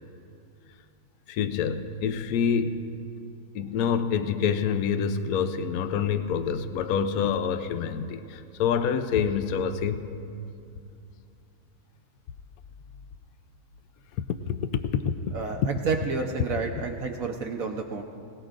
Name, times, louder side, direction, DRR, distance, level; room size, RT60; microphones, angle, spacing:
voice 1, 1.3-2.9 3.5-10.1 14.5-15.1, left 7 dB, 70° left, 9 dB, 1.1 m, -27 dB
voice 2, 15.3-18.0, right 4 dB, 65° right, 2 dB, 1.2 m, -30 dB
22.0 x 18.0 x 2.5 m, 2.5 s
omnidirectional pair, 1.6 m